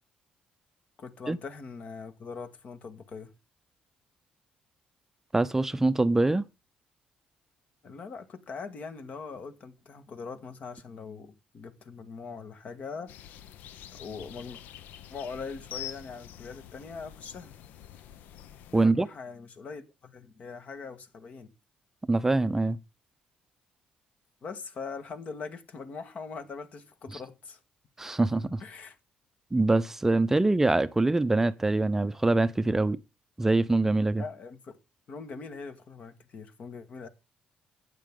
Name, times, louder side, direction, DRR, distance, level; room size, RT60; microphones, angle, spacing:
voice 1, 1.0-3.3 7.8-13.1 13.9-14.6 15.1-17.5 18.7-21.5 24.4-27.6 28.6-29.0 34.1-34.8 35.1-37.1, left 5 dB, 55° left, 1.5 m, -41 dB
voice 2, 5.3-6.4 18.7-19.1 22.1-22.8 28.0-28.6 29.5-33.0 33.4-34.2, right 2 dB, 15° right, 0.5 m, -24 dB
sound 1, 13.1-18.9, left 11 dB, 80° left, 0.7 m, -46 dB
11.5 x 8.4 x 3.7 m
cardioid pair, 100°, 3 cm